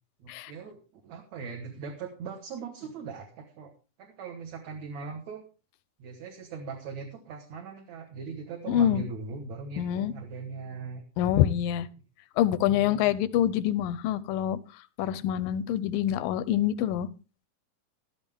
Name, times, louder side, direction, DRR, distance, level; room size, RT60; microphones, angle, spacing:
voice 1, 0.2-3.7 4.0-5.4 6.0-11.0 12.7-13.2, right 5 dB, 60° right, 2 dB, 2.7 m, -40 dB
voice 2, 8.7-9.0 9.8-10.1 11.2-11.9 12.4-14.6 15.0-17.1, left 11 dB, 85° left, 15 dB, 2.4 m, -26 dB
13.0 x 12.5 x 3.6 m, 0.32 s
omnidirectional pair, 4.0 m